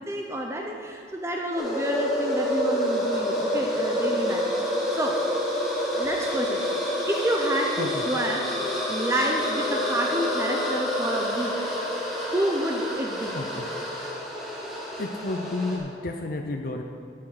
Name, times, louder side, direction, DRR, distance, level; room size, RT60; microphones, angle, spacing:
voice 1, 0.1-4.5 4.9-5.2 5.9-6.6 7.1-8.5 8.9-11.6 12.3-13.4, right 1 dB, 15° right, 1 dB, 0.6 m, -29 dB
sound 1, 1.6-15.8, equal, ahead, 1.7 m, -28 dB
voice 2, 13.3-13.7 15.0-16.8, left 2 dB, 55° left, 3 dB, 0.6 m, -31 dB
13.0 x 5.8 x 4.9 m, 2.4 s
head